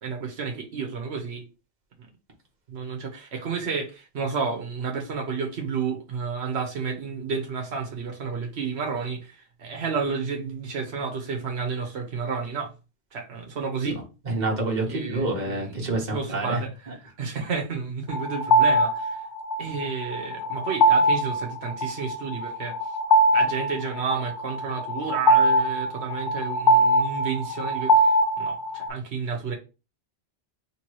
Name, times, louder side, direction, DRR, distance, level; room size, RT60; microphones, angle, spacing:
voice 1, 0.0-1.4 2.7-12.7 13.1-14.0 14.9-19.2 19.6-22.8 23.3-29.5, right 5 dB, 80° right, 1.2 m, -31 dB
voice 2, 14.3-16.6, right 2 dB, 45° right, 1.4 m, -27 dB
sound 1, 18.1-28.9, right 1 dB, 55° left, 0.7 m, -22 dB
3.4 x 3.0 x 4.6 m
omnidirectional pair, 1.1 m